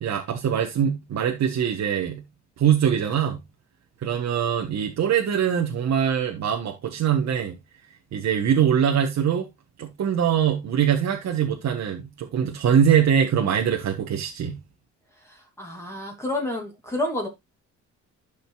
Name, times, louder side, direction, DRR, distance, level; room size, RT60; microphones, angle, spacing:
voice 1, 0.0-2.2 2.6-3.4 4.0-7.6 8.1-9.4 9.8-14.6, right 8 dB, 60° right, 1.3 m, -23 dB
voice 2, 15.3-17.3, left 1 dB, 10° left, 2.6 m, -30 dB
12.5 x 5.2 x 2.3 m
cardioid pair, 90°, 30 cm